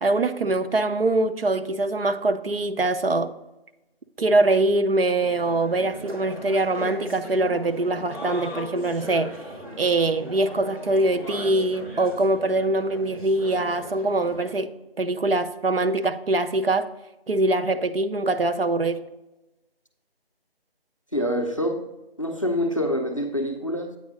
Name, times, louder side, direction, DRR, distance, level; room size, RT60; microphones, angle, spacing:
voice 1, 0.0-3.3 4.2-9.3 9.8-14.7 15.0-16.9 17.3-19.0, right 2 dB, 65° right, 0.6 m, -23 dB
sound 1, 5.2-14.5, equal, 30° right, 2.3 m, -38 dB
voice 2, 21.1-21.9 22.2-24.0, equal, 30° left, 0.5 m, -26 dB
8.5 x 4.7 x 3.8 m
figure-of-eight pair, 165°, 31 cm